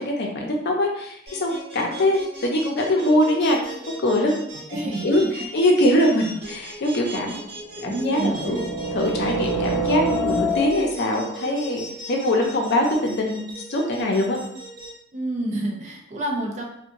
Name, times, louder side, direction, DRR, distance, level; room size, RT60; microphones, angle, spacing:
voice 1, 0.0-3.6 4.0-4.3 4.7-5.2 5.5-7.4 7.8-8.6 8.9-11.8 12.1-13.4 13.7-14.4, left 1 dB, 55° left, 0 dB, 0.6 m, -22 dB
sound 1, 1.3-14.9, right 2 dB, 55° right, 1.4 m, -39 dB
voice 2, 4.7-5.3 7.8-8.7 15.1-16.6, right 1 dB, 35° right, 0 dB, 0.5 m, -28 dB
sound 2, 6.5-6.6 7.7-11.2, right 1 dB, 10° left, 0.6 m, -27 dB
2.8 x 2.2 x 2.5 m, 0.73 s
head